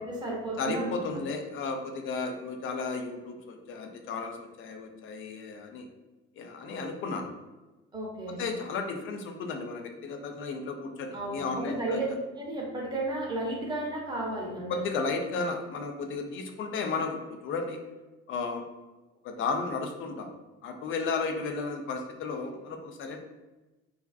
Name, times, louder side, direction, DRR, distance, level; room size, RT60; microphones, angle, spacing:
voice 1, 0.0-1.2 7.9-8.4 11.1-12.0 12.4-14.8, right 2 dB, 10° right, -3 dB, 0.8 m, -33 dB
voice 2, 0.6-5.9 6.4-7.3 8.3-12.0 14.7-17.8 18.3-18.6 19.2-20.3 20.6-23.2, left 4 dB, 35° left, 4 dB, 0.4 m, -34 dB
2.4 x 2.2 x 2.4 m, 1.1 s
figure-of-eight pair, 60°, 37 cm